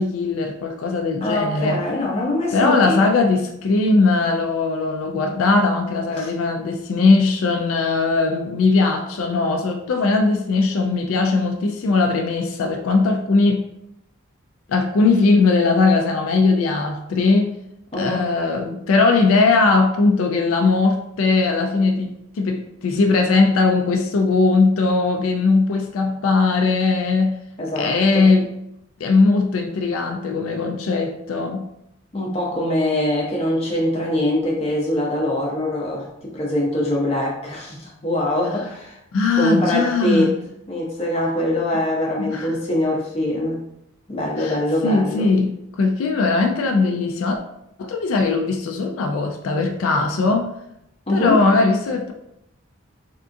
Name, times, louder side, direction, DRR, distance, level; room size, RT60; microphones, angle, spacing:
voice 1, 0.0-1.8 2.5-13.7 14.7-17.6 18.0-27.4 27.8-28.5 29.0-31.7 39.1-40.3 42.2-42.5 44.4-44.6 44.8-47.4 47.8-50.5 51.1-52.1, left 3 dB, 80° left, 4 dB, 0.3 m, -19 dB
voice 2, 1.2-3.0 6.2-6.3 17.9-18.3 27.6-28.3 32.1-39.0 39.4-40.3 40.7-43.6 44.1-45.3 51.1-51.4, left 1 dB, 30° left, -3 dB, 0.7 m, -23 dB
3.5 x 2.4 x 2.5 m, 0.81 s
head